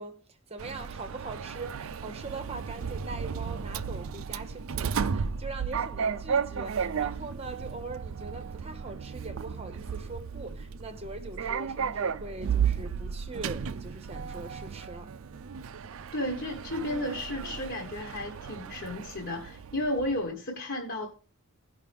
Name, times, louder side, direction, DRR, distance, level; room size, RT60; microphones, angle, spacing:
voice 1, 0.0-15.1, right 2 dB, 25° right, 0.8 m, -42 dB
Sliding door, 0.6-20.2, right 6 dB, 65° right, 0.4 m, -34 dB
voice 2, 16.1-21.1, left 1 dB, 50° left, 1.3 m, -33 dB
16.0 x 5.5 x 3.5 m
head